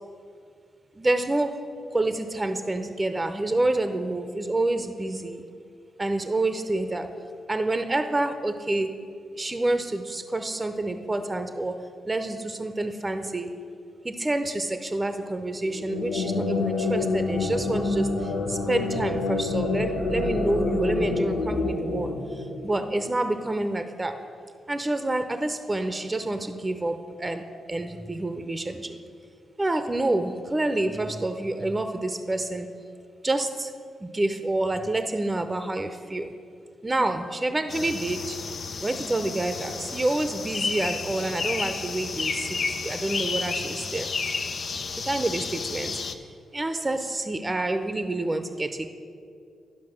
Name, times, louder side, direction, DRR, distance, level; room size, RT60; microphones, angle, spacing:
voice 1, 1.0-1.6 1.9-5.4 6.0-7.1 7.5-9.0 9.4-11.8 12.1-13.6 14.0-24.1 24.7-27.4 27.7-29.0 29.6-32.7 33.2-33.7 34.0-36.4 36.8-38.4 38.8-44.1 45.0-46.3 46.5-48.9, right 2 dB, 25° right, 8 dB, 0.7 m, -28 dB
sound 1, 15.7-23.1, left 3 dB, 85° left, 0.9 m, -27 dB
sound 2, 37.7-46.1, left 4 dB, 60° left, 0.5 m, -31 dB
11.0 x 5.4 x 6.4 m, 2.3 s
hypercardioid pair, 40°, 0 cm